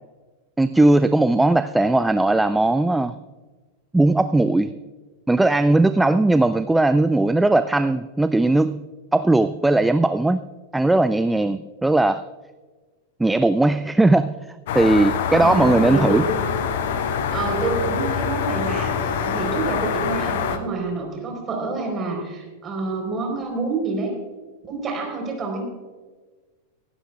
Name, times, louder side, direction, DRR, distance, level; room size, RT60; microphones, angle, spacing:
voice 1, 0.6-3.1 3.9-4.7 5.3-8.8 9.1-10.5 10.7-12.2 13.2-14.3 14.7-16.2, right 2 dB, 5° right, 13 dB, 0.3 m, -18 dB
sound 1, 14.7-20.6, left 7 dB, 55° left, 0.9 m, -25 dB
voice 2, 15.3-16.4 17.3-24.1 24.7-25.6, right 3 dB, 25° right, 1 dB, 4.1 m, -27 dB
24.5 x 11.0 x 2.4 m, 1.3 s
figure-of-eight pair, 90°, 0 cm